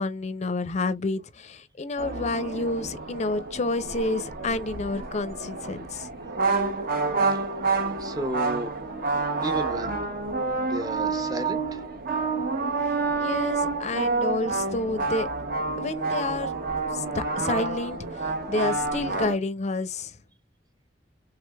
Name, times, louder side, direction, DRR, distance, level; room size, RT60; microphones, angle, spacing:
voice 1, 0.0-6.1 13.1-15.3 15.8-16.5 16.9-20.2, left 2 dB, 40° left, 0.5 m, -29 dB
sound 1, 2.0-19.4, right 3 dB, 50° right, 0.8 m, -28 dB
voice 2, 8.0-8.7 9.4-10.1 10.7-11.8, right 1 dB, 20° right, 0.7 m, -33 dB
3.6 x 3.2 x 2.2 m
head